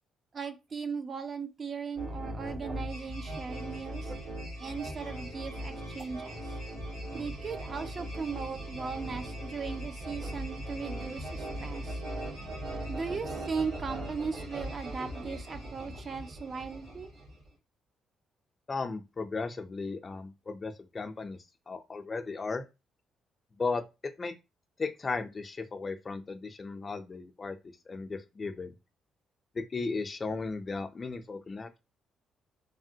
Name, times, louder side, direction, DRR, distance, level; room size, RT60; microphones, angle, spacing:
voice 1, 0.3-4.1 4.6-6.6 7.1-12.0 12.9-17.1, right 5 dB, 40° right, 0.4 m, -38 dB
sound 1, 1.9-17.5, right 1 dB, 90° right, 1.8 m, -39 dB
voice 2, 18.7-21.4 21.7-22.6 23.6-24.3 24.8-27.6 27.9-28.7 29.5-31.8, left 4 dB, 35° left, 0.4 m, -36 dB
3.3 x 2.1 x 2.7 m
cardioid pair, 90°, 0 cm